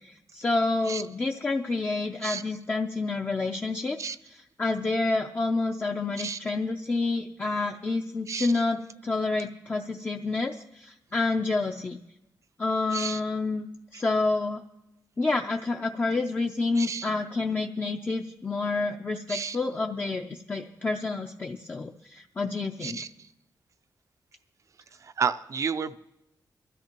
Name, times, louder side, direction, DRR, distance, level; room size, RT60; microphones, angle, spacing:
voice 1, 0.0-4.1 4.6-12.0 12.6-13.7 13.9-14.6 15.2-23.0, left 3 dB, 25° left, 3 dB, 0.5 m, -28 dB
voice 2, 8.3-8.6 12.9-13.2 13.9-14.0 16.8-17.1 19.3-19.6 22.8-23.3 25.0-26.0, right 6 dB, 45° right, 11 dB, 0.4 m, -32 dB
23.0 x 13.5 x 2.9 m, 0.88 s
wide cardioid pair, 160°, 7 cm